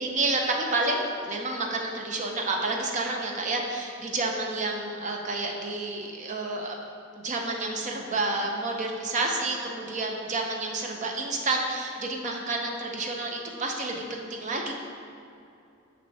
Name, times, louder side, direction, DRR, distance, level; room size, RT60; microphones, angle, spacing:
voice 1, 0.0-6.7 7.2-14.7, right 2 dB, 35° right, 1 dB, 0.6 m, -29 dB
6.4 x 5.6 x 2.7 m, 2.6 s
head